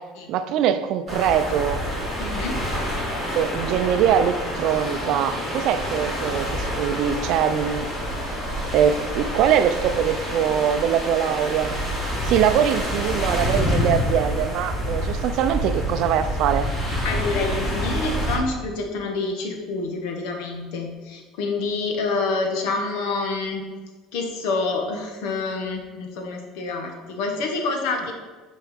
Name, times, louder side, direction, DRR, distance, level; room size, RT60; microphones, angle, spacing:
voice 1, 0.3-1.8 3.4-7.9 8.3-8.4 8.7-11.8 12.2-16.7, right 9 dB, 55° right, 11 dB, 0.5 m, -22 dB
sound 1, 1.1-18.4, equal, 15° left, 2.4 m, -27 dB
voice 2, 2.2-2.6 17.0-23.6 24.1-28.1, left 3 dB, 75° left, 3 dB, 1.4 m, -27 dB
7.9 x 4.7 x 5.1 m, 1.3 s
cardioid pair, 160°, 0 cm